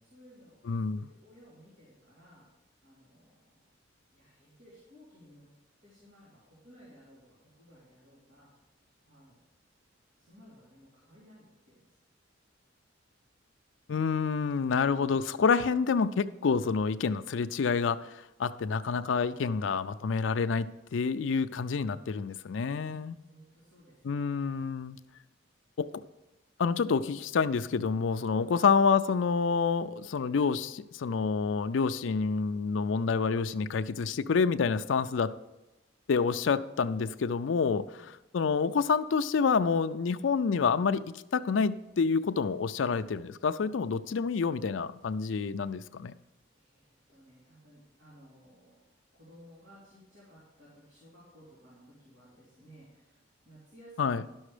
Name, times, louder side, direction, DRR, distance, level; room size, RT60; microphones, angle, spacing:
voice 1, 0.0-2.5 2.8-3.6 4.1-5.5 5.8-8.5 9.1-9.4 10.2-12.0 22.8-24.4 28.3-28.6 37.9-38.1 46.5-48.8 49.1-54.3, equal, 60° right, -9 dB, 3.4 m, -57 dB
voice 2, 0.7-1.1 13.9-23.1 24.0-25.0 25.8-25.9 26.6-35.3 36.1-37.9 38.3-41.0 41.3-46.1 54.0-54.2, left 5 dB, 70° left, 11 dB, 0.4 m, -28 dB
11.5 x 6.3 x 4.9 m, 0.99 s
head